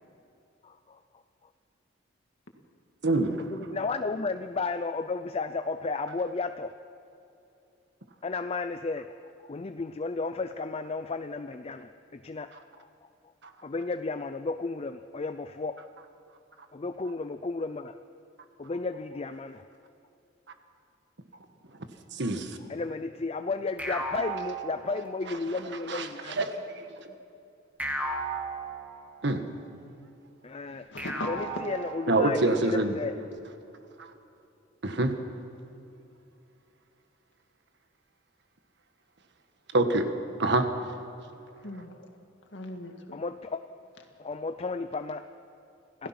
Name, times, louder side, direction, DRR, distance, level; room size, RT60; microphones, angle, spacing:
voice 1, 0.6-1.0 3.4-6.7 8.2-9.1 9.4-12.5 12.8-12.9 13.6-15.8 16.7-18.0 18.6-19.7 22.7-26.5 30.4-30.8 31.3-33.2 43.1-43.6 44.2-45.3, left 3 dB, 30° left, 0.5 m, -33 dB
voice 2, 3.0-3.4 22.1-22.6 25.9-26.5 26.8-27.1 29.2-29.4 32.1-32.9 34.0-34.1 34.8-35.2 39.7-40.1 40.4-40.7, right 2 dB, 60° right, 1.6 m, -26 dB
sound 1, 23.8-25.4 27.8-29.4 31.0-32.5, right 2 dB, 10° right, 2.5 m, -35 dB
voice 3, 30.7-31.5 41.5-42.1 42.5-43.2, left 1 dB, 65° left, 2.2 m, -40 dB
27.0 x 16.5 x 6.0 m
head